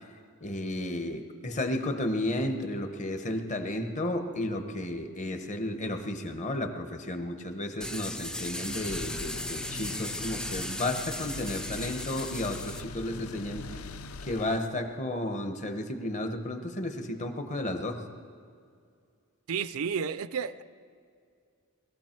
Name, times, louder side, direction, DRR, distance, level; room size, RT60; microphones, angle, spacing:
voice 1, 0.4-13.8 14.2-18.0, left 1 dB, 35° left, 7 dB, 1.0 m, -33 dB
sound 1, 7.8-12.8, left 1 dB, 5° left, 0.4 m, -37 dB
sound 2, 8.6-14.6, left 3 dB, 75° left, 0.6 m, -42 dB
voice 2, 19.5-20.6, right 6 dB, 75° right, 15 dB, 0.5 m, -31 dB
20.5 x 15.0 x 4.5 m, 2.3 s
head